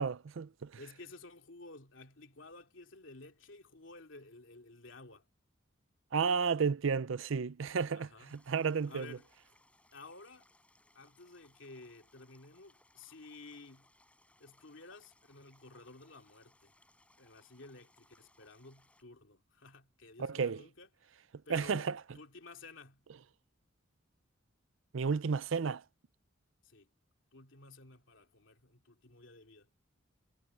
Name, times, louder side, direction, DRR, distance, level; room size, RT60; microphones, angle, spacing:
voice 1, 0.0-0.7 6.1-9.2 20.2-20.6 21.5-22.0 24.9-25.8, right 5 dB, 70° right, 0.5 m, -32 dB
voice 2, 0.8-5.3 7.9-8.4 8.8-9.3 9.9-10.4 10.9-13.9 14.4-16.7 17.2-20.9 21.5-21.9 22.1-23.0 26.6-26.9 27.3-29.7, left 3 dB, 70° left, 2.7 m, -53 dB
sound 1, 8.2-19.0, left 1 dB, 5° left, 7.1 m, -68 dB
head